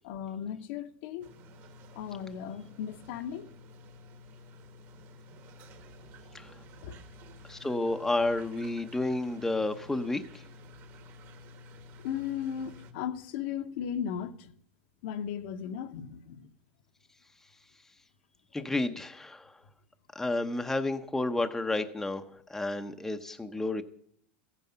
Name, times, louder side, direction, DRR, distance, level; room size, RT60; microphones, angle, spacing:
voice 1, 0.0-1.3 1.9-3.5 6.8-7.0 12.0-14.5 15.0-16.5, left 8 dB, 65° left, 1.0 m, -36 dB
sound 1, 1.2-12.9, left 1 dB, 45° right, 1.6 m, -51 dB
voice 2, 7.5-10.4 18.5-19.5 20.1-22.2 22.5-23.8, left 2 dB, 5° left, 0.7 m, -31 dB
14.5 x 9.3 x 5.6 m
supercardioid pair, 135°, 6 cm